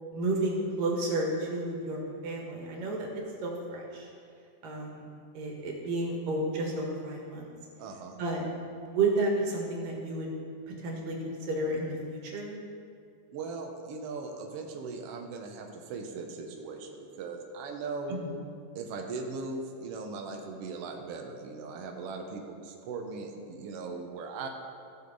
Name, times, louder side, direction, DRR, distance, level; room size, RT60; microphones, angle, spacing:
voice 1, 0.1-3.1 3.4-4.1 4.6-5.1 5.3-7.5 8.2-8.5 8.8-10.3 10.8-12.6 18.1-18.4, right 2 dB, 90° right, -2 dB, 3.2 m, -31 dB
voice 2, 7.8-8.2 13.3-18.1 18.7-24.5, right 4 dB, 65° right, 2 dB, 1.5 m, -39 dB
15.0 x 6.6 x 4.0 m, 2.4 s
omnidirectional pair, 3.7 m